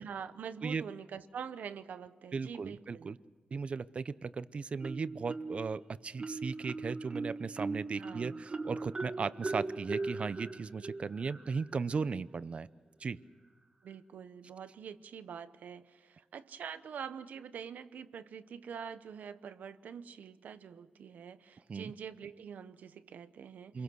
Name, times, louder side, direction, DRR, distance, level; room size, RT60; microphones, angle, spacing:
voice 1, 0.0-3.1 8.0-8.4 13.8-23.8, right 7 dB, 90° right, 11 dB, 1.0 m, -45 dB
voice 2, 2.3-3.2 3.5-12.7 13.0-13.2 21.7-21.9 23.7-23.8, right 5 dB, 45° right, 16 dB, 0.7 m, -36 dB
Marimba xylophone, 4.8-5.7 6.2-11.7, right 3 dB, 30° right, 1.6 m, -39 dB
28.0 x 22.5 x 6.3 m, 1.4 s
wide cardioid pair, 115°, 3 cm